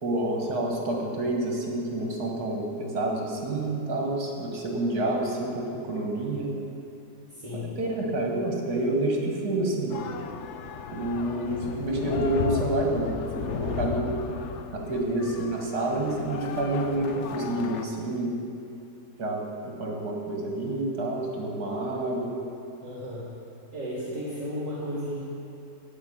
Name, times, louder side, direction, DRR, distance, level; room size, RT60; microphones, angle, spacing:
voice 1, 0.0-6.5 7.5-10.0 10.9-14.2 14.7-18.3 19.2-22.3, right 1 dB, 65° right, 0 dB, 2.2 m, -28 dB
voice 2, 7.3-7.7 22.8-23.3 23.7-25.2, equal, 50° right, -8 dB, 2.3 m, -34 dB
sound 1, 9.9-17.8, left 7 dB, 75° left, 0.6 m, -35 dB
11.5 x 5.1 x 8.7 m, 2.7 s
omnidirectional pair, 1.8 m